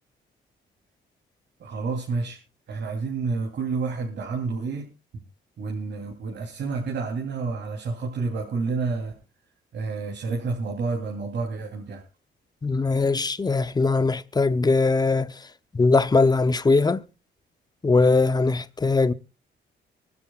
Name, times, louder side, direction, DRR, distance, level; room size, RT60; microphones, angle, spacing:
voice 1, 1.6-2.4 2.7-4.9 5.6-9.1 9.7-12.0, right 4 dB, 60° right, 3.3 m, -29 dB
voice 2, 12.6-15.3 15.7-17.0 17.8-19.1, left 3 dB, 20° left, 0.7 m, -21 dB
24.5 x 12.0 x 2.4 m
cardioid pair, 90°, 20 cm